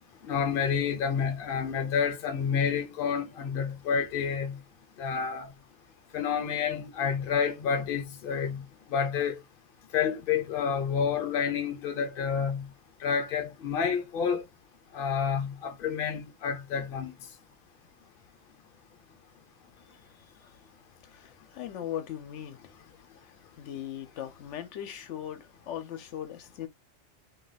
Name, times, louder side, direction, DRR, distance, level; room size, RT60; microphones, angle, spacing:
voice 1, 0.3-4.6 5.0-5.5 6.1-8.6 8.9-9.4 9.9-12.7 13.0-14.4 14.9-17.1, left 7 dB, 55° left, 0.8 m, -29 dB
voice 2, 19.8-20.6 21.0-22.8 23.1-26.7, left 10 dB, 90° left, 0.9 m, -40 dB
2.8 x 2.2 x 4.0 m
omnidirectional pair, 1.2 m